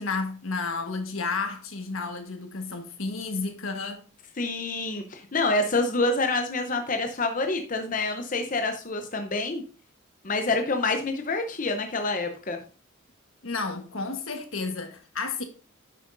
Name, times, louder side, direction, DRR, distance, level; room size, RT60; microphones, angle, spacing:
voice 1, 0.0-4.0 13.4-15.4, left 4 dB, 80° left, 1.4 m, -31 dB
voice 2, 4.4-9.6 10.2-12.6, left 3 dB, 40° left, 0.7 m, -27 dB
10.0 x 7.4 x 2.6 m
head